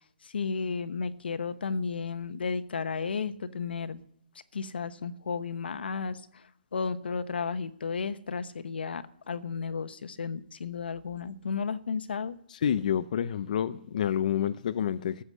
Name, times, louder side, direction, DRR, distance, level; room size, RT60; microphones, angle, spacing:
voice 1, 0.2-4.0 4.5-12.4, left 5 dB, 90° left, 1.0 m, -33 dB
voice 2, 12.6-15.2, left 9 dB, 50° left, 0.6 m, -28 dB
14.5 x 8.0 x 9.7 m
hypercardioid pair, 165°, 5 cm